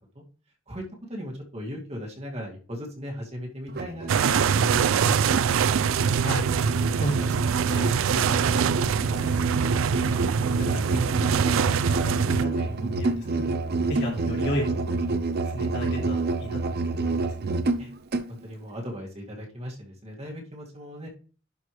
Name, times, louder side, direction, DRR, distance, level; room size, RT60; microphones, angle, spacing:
voice 1, 0.7-5.4 13.2-13.4 17.8-17.9 18.3-21.1, equal, 35° right, -1 dB, 2.2 m, -38 dB
Musical instrument, 3.7-18.3, right 3 dB, 55° right, 0.7 m, -29 dB
sound 1, 4.1-12.5, right 7 dB, 80° right, 0.4 m, -24 dB
voice 2, 6.9-9.5 10.0-11.1 11.4-13.6 13.9-15.1 15.5-17.6, equal, 60° left, -3 dB, 3.3 m, -34 dB
11.5 x 5.1 x 3.3 m, 0.38 s
head